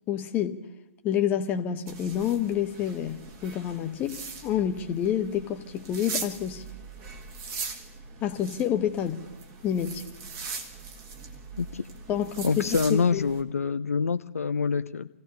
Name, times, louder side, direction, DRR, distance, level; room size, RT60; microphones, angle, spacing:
voice 1, 0.1-0.6 1.0-6.6 8.2-9.2 9.6-10.0 12.1-13.3, left 9 dB, 25° left, 6 dB, 1.0 m, -28 dB
sound 1, 1.9-13.4, right 4 dB, 30° right, 1.6 m, -41 dB
voice 2, 12.4-15.1, left 5 dB, 80° left, 10 dB, 0.5 m, -26 dB
28.5 x 16.0 x 2.7 m, 1.0 s
figure-of-eight pair, 130°, 8 cm